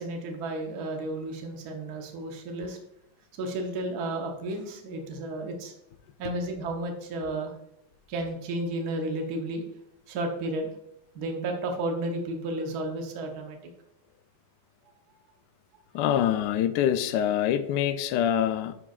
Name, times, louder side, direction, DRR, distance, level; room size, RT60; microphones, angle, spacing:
voice 1, 0.0-2.8 3.4-5.7 6.2-7.5 8.1-9.6 10.1-10.7 11.1-13.6, right 2 dB, 55° right, 2 dB, 1.3 m, -32 dB
voice 2, 15.9-18.7, left 10 dB, 80° left, 10 dB, 0.9 m, -25 dB
10.0 x 4.9 x 2.4 m, 0.80 s
omnidirectional pair, 2.4 m